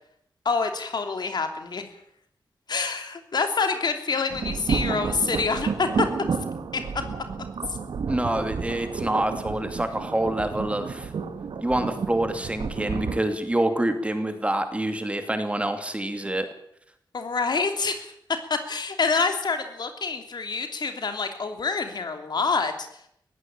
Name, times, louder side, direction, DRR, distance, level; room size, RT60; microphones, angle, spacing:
voice 1, 0.4-1.8 2.7-6.1 6.7-6.8 17.1-18.1 18.5-22.7, left 4 dB, 60° left, 7 dB, 3.1 m, -26 dB
sound 1, 4.3-13.2, right 5 dB, 80° right, 2.1 m, -31 dB
voice 2, 8.1-11.1 11.6-16.5, right 1 dB, 15° right, 8 dB, 2.6 m, -26 dB
20.0 x 16.0 x 8.8 m, 0.71 s
wide cardioid pair, 115°, 8 cm